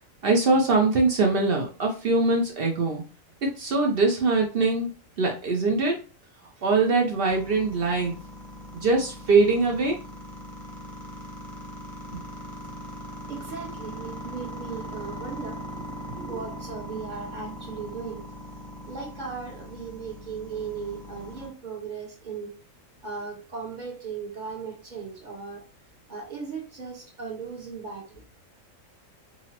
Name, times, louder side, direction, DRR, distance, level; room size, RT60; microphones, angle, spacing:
voice 1, 0.2-3.0 3.4-4.9 5.2-6.1 6.6-8.2 8.7-10.0, right 3 dB, 60° right, 2 dB, 0.6 m, -22 dB
sound 1, 7.3-21.5, equal, 30° left, 0.7 m, -40 dB
voice 2, 13.3-18.3 18.8-22.5 23.0-25.6 26.1-28.2, right 5 dB, 40° right, 0 dB, 1.0 m, -37 dB
3.9 x 2.0 x 2.8 m, 0.34 s
omnidirectional pair, 1.4 m